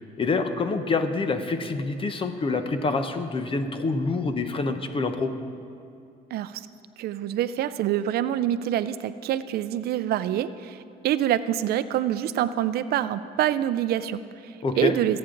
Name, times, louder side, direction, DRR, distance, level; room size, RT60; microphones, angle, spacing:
voice 1, 0.2-5.3 14.6-15.0, left 3 dB, 30° left, 8 dB, 0.9 m, -26 dB
voice 2, 6.3-6.7 7.0-15.2, right 11 dB, 70° right, 14 dB, 0.5 m, -26 dB
21.5 x 8.7 x 3.9 m, 2.5 s
cardioid pair, 110°, 17 cm